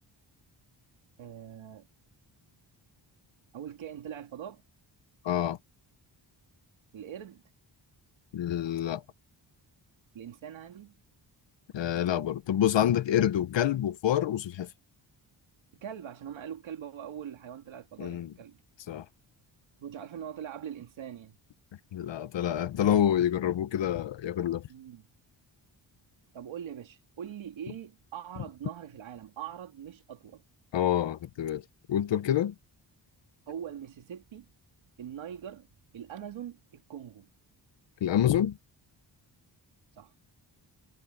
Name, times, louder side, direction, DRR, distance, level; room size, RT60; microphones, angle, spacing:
voice 1, 1.2-1.9 3.5-4.6 6.9-7.4 10.1-10.9 15.8-18.6 19.8-21.4 24.7-25.0 26.3-30.4 33.5-34.5 35.0-35.7 35.9-37.3 40.0-40.1, right 9 dB, 90° right, 2.5 m, -42 dB
voice 2, 5.2-5.6 8.3-9.0 11.7-14.7 18.0-18.3 18.9-19.0 21.9-24.6 30.7-31.6 31.9-32.5 38.0-38.6, left 10 dB, 70° left, 1.0 m, -27 dB
wide cardioid pair, 165°, 45 cm